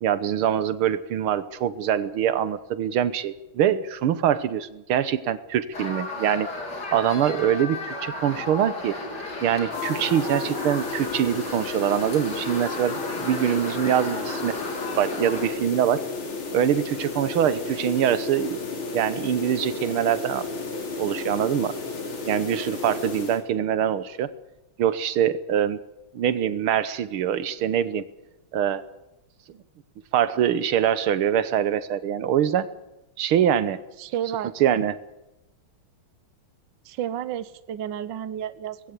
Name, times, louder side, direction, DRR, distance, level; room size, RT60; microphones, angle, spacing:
voice 1, 0.0-6.5 6.9-9.0 9.4-14.6 15.0-16.0 16.5-18.6 18.9-20.5 21.0-21.7 22.3-24.3 24.8-25.8 26.1-28.0 28.5-28.8 30.1-32.7 33.2-33.8 34.6-35.0, right 10 dB, 80° right, 14 dB, 1.9 m, -24 dB
sound 1, 5.7-15.5, left 2 dB, 50° left, 4.0 m, -34 dB
sound 2, 9.7-23.4, left 3 dB, 75° left, 3.8 m, -33 dB
voice 2, 34.0-34.5 36.8-38.9, right 10 dB, 65° right, 14 dB, 1.5 m, -31 dB
20.0 x 17.0 x 8.4 m, 0.95 s
omnidirectional pair, 2.3 m